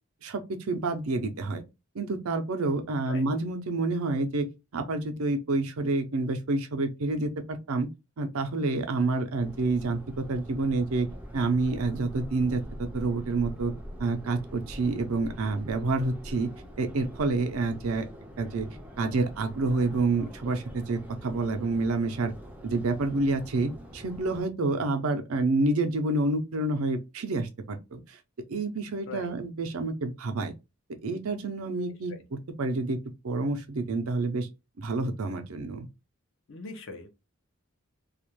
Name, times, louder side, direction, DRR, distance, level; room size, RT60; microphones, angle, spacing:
voice 1, 0.2-1.6 1.9-4.5 4.7-7.9 8.2-11.1 11.3-13.7 14.0-16.5 16.8-18.1 18.4-18.7 19.0-22.3 22.6-28.2 28.5-30.5 31.0-33.0 33.2-34.5 34.8-35.9, right 3 dB, 85° right, 0.5 m, -28 dB
Subway metro underground, 9.4-24.4, equal, 5° right, 0.4 m, -44 dB
voice 2, 36.5-37.1, left 3 dB, 60° left, 0.6 m, -41 dB
2.4 x 2.1 x 3.0 m
head